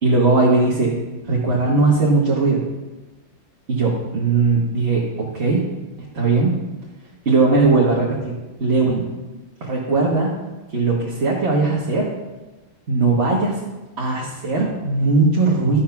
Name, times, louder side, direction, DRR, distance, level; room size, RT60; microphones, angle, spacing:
voice 1, 0.0-0.9 1.3-2.6 3.7-5.6 6.0-6.5 7.2-8.3 8.6-9.0 9.6-10.3 10.7-12.1 12.9-13.6 14.0-15.8, right 3 dB, 35° right, -4 dB, 1.5 m, -18 dB
12.0 x 7.5 x 5.9 m, 1.1 s
omnidirectional pair, 2.3 m